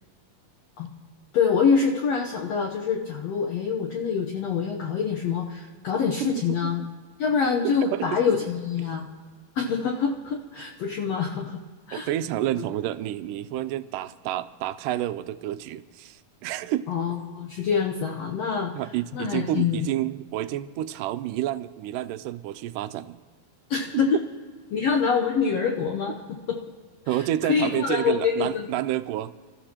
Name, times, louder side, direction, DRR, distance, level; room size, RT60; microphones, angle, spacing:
voice 1, 1.3-6.8 7.2-9.1 9.5-11.6 11.9-12.1 16.9-18.7 19.1-19.8 23.7-24.2 24.7-26.6 27.5-28.7, left 6 dB, 65° left, 1 dB, 1.7 m, -25 dB
voice 2, 6.2-6.9 7.6-8.3 11.9-16.9 18.8-23.2 23.9-24.2 27.1-29.3, right 13 dB, 85° right, 13 dB, 2.1 m, -29 dB
27.0 x 13.5 x 2.9 m, 1.5 s
omnidirectional pair, 3.8 m